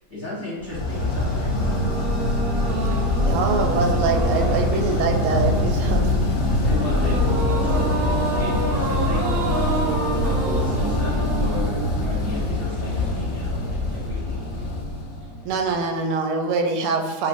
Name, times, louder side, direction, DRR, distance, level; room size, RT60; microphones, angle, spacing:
voice 1, 0.1-1.9 4.4-5.2 6.6-7.9 8.3-9.2 10.2-14.4, left 2 dB, 35° left, -8 dB, 0.9 m, -35 dB
sound 1, 0.6-15.7, left 1 dB, 65° left, 0.8 m, -24 dB
sound 2, 1.5-12.9, right 2 dB, 65° right, 0.9 m, -29 dB
voice 2, 3.2-6.1 15.4-17.3, right 4 dB, 85° right, 3 dB, 1.5 m, -24 dB
Piano, 5.2-12.7, left 7 dB, 85° left, 1.5 m, -33 dB
7.0 x 2.4 x 2.5 m, 1.2 s
omnidirectional pair, 2.4 m